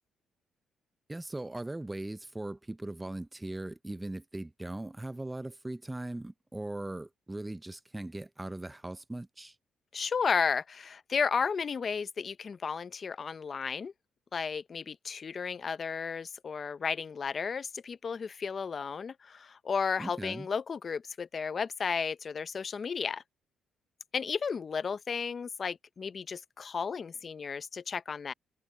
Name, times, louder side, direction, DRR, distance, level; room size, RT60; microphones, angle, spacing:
voice 1, 1.1-9.5 20.0-20.5, right 2 dB, 10° right, 0.6 m, -39 dB
voice 2, 9.9-13.9 14.3-23.2 24.1-28.3, left 6 dB, 40° left, 0.5 m, -33 dB
cardioid pair, 90°, 0 cm